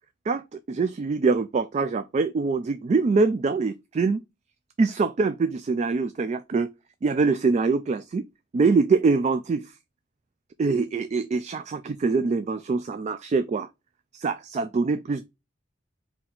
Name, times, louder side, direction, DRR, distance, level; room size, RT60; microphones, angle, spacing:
voice 1, 0.3-4.2 4.8-6.7 7.0-8.2 8.5-9.7 10.6-13.7 14.1-15.2, right 4 dB, 35° right, 0.3 m, -24 dB
4.3 x 2.8 x 3.8 m
head